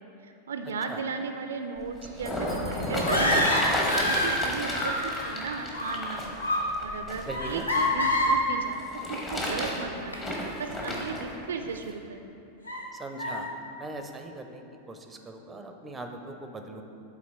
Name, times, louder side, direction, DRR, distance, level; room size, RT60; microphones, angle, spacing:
voice 1, 0.0-3.7 4.1-6.4 6.8-10.2 10.6-12.3, right 5 dB, 65° right, 6 dB, 0.3 m, -36 dB
sound 1, 1.8-7.9 8.7-11.3 11.9-12.0, equal, 20° left, 1.1 m, -32 dB
sound 2, 2.9-4.4 4.7-5.3 5.6-6.1 6.4-6.7 7.3-8.4 9.4-9.5 10.1-10.2 10.9-11.0 11.6-11.7 12.7-12.8 13.2-13.4, left 1 dB, 80° left, 0.8 m, -26 dB
voice 2, 7.3-7.7 12.9-13.5 13.8-14.6 14.9-16.8, right 2 dB, 15° right, 5 dB, 0.5 m, -40 dB
7.3 x 4.1 x 4.2 m, 2.8 s
figure-of-eight pair, 90°, 0 cm